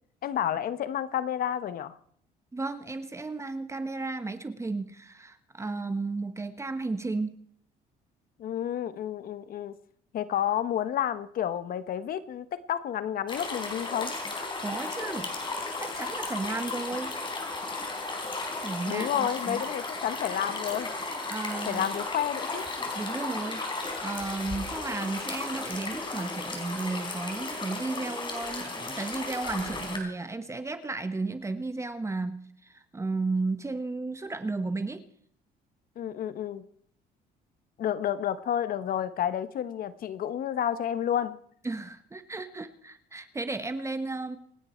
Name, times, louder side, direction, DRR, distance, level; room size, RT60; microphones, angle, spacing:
voice 1, 0.2-2.0 8.4-9.8 10.1-14.1 18.9-20.9 21.7-22.7 36.0-36.6 37.8-41.4, left 10 dB, 60° left, 13 dB, 1.2 m, -30 dB
voice 2, 2.5-7.3 14.6-15.3 15.8-17.1 18.6-19.6 21.3-21.9 22.9-35.0 41.6-44.4, right 3 dB, 15° right, 10 dB, 1.2 m, -34 dB
sound 1, 13.3-30.0, left 3 dB, 30° left, 4.4 m, -35 dB
27.0 x 9.8 x 4.5 m, 0.65 s
cardioid pair, 110°, 17 cm